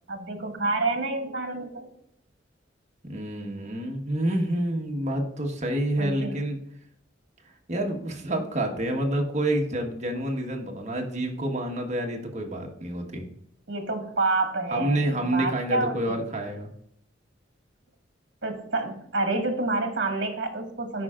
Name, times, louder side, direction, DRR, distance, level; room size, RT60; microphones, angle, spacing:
voice 1, 0.1-1.9 6.0-6.4 13.7-15.1 15.3-16.0 18.4-21.0, right 2 dB, 65° right, 3 dB, 1.8 m, -28 dB
voice 2, 3.0-6.6 7.4-13.2 14.7-16.7, right 1 dB, 40° right, 2 dB, 1.4 m, -28 dB
13.0 x 5.6 x 2.5 m, 0.70 s
head